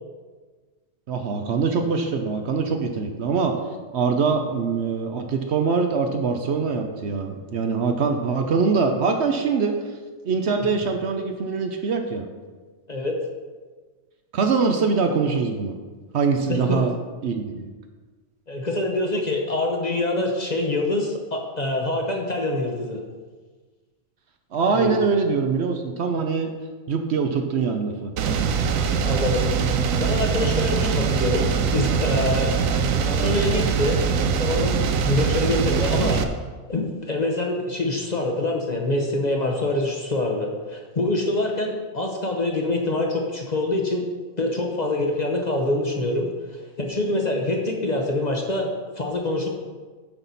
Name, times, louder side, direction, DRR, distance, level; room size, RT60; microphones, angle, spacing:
voice 1, 1.1-3.5 3.9-9.7 10.2-12.3 14.3-15.7 16.1-16.9 17.2-17.4 24.5-26.5 26.9-28.1, right 5 dB, 60° right, 5 dB, 0.9 m, -23 dB
voice 2, 16.5-16.9 18.5-23.0 24.7-25.1 29.0-29.5 30.0-32.5 33.0-34.0 34.4-36.2 36.7-44.0 44.4-49.5, left 2 dB, 35° left, 1 dB, 0.9 m, -25 dB
sound 1, 28.2-36.2, right 6 dB, 85° right, 1.0 m, -22 dB
9.0 x 5.9 x 4.0 m, 1.4 s
omnidirectional pair, 1.4 m